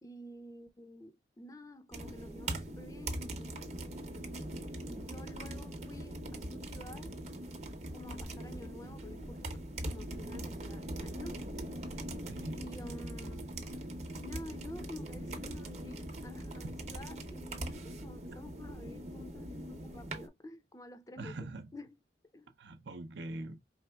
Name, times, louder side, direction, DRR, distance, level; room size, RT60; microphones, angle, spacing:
voice 1, 0.0-3.7 4.8-7.1 7.9-9.5 9.8-11.4 12.6-13.5 14.2-21.4 21.7-22.0 22.3-22.5, left 1 dB, 20° left, 0.4 m, -50 dB
sound 1, 1.9-20.3, right 1 dB, 35° right, 0.7 m, -41 dB
voice 2, 12.3-12.6 16.6-16.7 21.2-21.7 22.6-23.6, right 2 dB, 75° right, 0.6 m, -42 dB
4.8 x 3.4 x 2.2 m
head